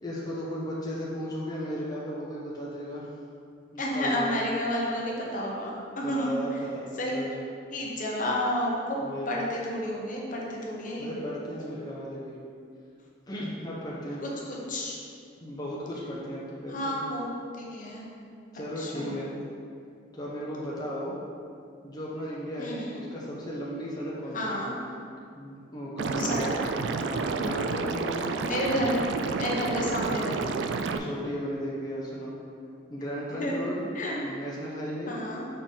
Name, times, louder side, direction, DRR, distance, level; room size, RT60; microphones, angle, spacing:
voice 1, 0.0-3.1 3.7-4.4 6.0-7.5 9.0-9.5 11.0-12.3 13.3-14.2 15.4-16.9 18.5-19.4 20.1-21.2 21.8-24.7 25.3-26.5 27.0-28.3 28.6-28.9 29.5-30.0 30.9-32.4 32.9-33.8 34.2-35.2, equal, 20° left, -6 dB, 0.8 m, -35 dB
voice 2, 3.8-6.4 7.0-7.1 7.7-9.0 9.3-11.1 14.2-15.0 16.7-17.3 17.5-18.1 18.8-19.2 22.6-23.0 24.3-24.7 26.2-26.5 28.5-28.9 29.4-30.4 33.4-33.7 33.9-34.2 35.1-35.5, left 1 dB, 45° left, -3 dB, 1.0 m, -31 dB
Liquid, 26.0-31.0, right 4 dB, 80° right, 0.3 m, -30 dB
6.6 x 4.2 x 3.8 m, 2.4 s
head